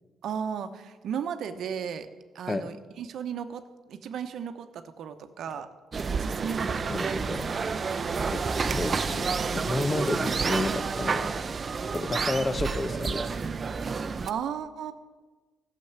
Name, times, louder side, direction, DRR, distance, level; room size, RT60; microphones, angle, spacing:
voice 1, 0.2-2.1 2.3-3.6 3.9-5.7 6.1-7.7 12.1-12.3 14.3-14.9, right 7 dB, 70° right, 9 dB, 0.9 m, -35 dB
sound 1, 5.9-14.3, right 5 dB, 40° right, 0.6 m, -29 dB
voice 2, 6.9-7.4 8.3-8.4 8.7-11.4 11.9-13.3, left 2 dB, 25° left, 11 dB, 0.8 m, -31 dB
12.5 x 6.8 x 8.1 m, 1.3 s
cardioid pair, 90°, 0 cm